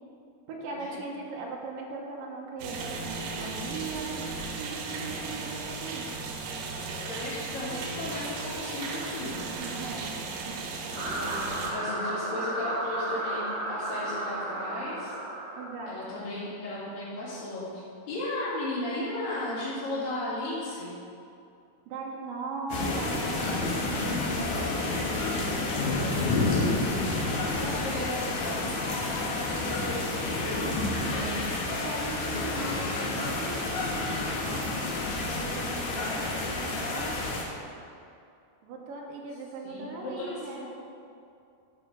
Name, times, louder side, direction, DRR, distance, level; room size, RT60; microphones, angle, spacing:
voice 1, 0.5-6.1 9.5-10.1 10.4-10.6 15.6-16.2 21.9-25.6 31.1-31.4 31.8-37.2 38.6-40.7, right 3 dB, 70° right, -1 dB, 2.4 m, -39 dB
sound 1, 2.6-11.7, right 3 dB, 85° right, 3.0 m, -36 dB
voice 2, 7.1-9.5 11.0-15.1 15.9-17.7 18.1-21.0 25.8-30.6 32.2-32.7 39.6-40.7, left 2 dB, 85° left, -13 dB, 4.4 m, -35 dB
sound 2, 10.9-16.0, right 2 dB, 35° right, 2.7 m, -33 dB
sound 3, 22.7-37.4, left 2 dB, 60° left, 2.1 m, -30 dB
11.5 x 5.0 x 5.0 m, 2.6 s
omnidirectional pair, 4.6 m